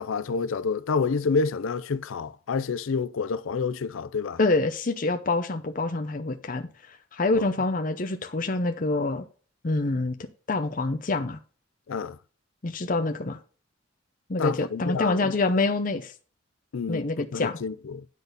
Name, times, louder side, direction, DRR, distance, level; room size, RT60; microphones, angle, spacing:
voice 1, 0.0-4.4 7.3-7.5 11.9-12.2 14.4-15.3 16.7-18.1, left 5 dB, 90° left, 0.5 m, -28 dB
voice 2, 4.4-9.2 9.6-10.2 10.5-11.4 12.6-13.4 14.3-16.1 16.9-17.6, left 2 dB, 45° left, 0.7 m, -26 dB
10.0 x 4.1 x 6.6 m
head